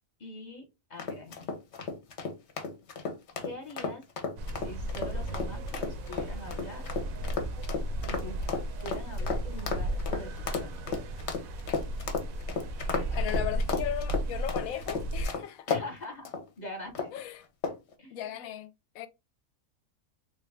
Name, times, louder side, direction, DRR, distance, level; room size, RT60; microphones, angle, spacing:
voice 1, 0.2-0.6 0.9-1.5 3.4-4.0 4.5-6.9 8.0-8.4 8.8-11.0 13.0-13.6 15.7-16.3 16.6-17.1 18.0-18.3, left 2 dB, 35° left, 1.0 m, -43 dB
sound 1, 1.0-15.9 16.3-16.4 17.0-17.2 17.6-17.9, left 4 dB, 60° left, 0.9 m, -34 dB
sound 2, 4.4-15.3, equal, 80° right, 1.0 m, -34 dB
voice 2, 13.0-15.7 17.1-17.4 18.1-19.1, left 11 dB, 85° left, 1.0 m, -37 dB
3.5 x 2.4 x 3.2 m
omnidirectional pair, 1.4 m